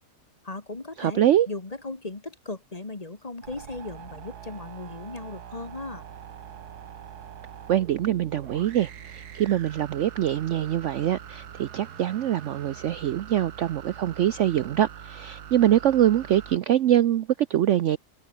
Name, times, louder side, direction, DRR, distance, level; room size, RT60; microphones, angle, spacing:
voice 1, 0.4-6.0, left 2 dB, 25° left, 1.6 m, -37 dB
voice 2, 1.0-1.5 7.7-18.0, right 11 dB, 65° right, 0.8 m, -24 dB
sound 1, 3.4-16.6, right 8 dB, 80° right, 1.8 m, -43 dB
omnidirectional pair, 1.7 m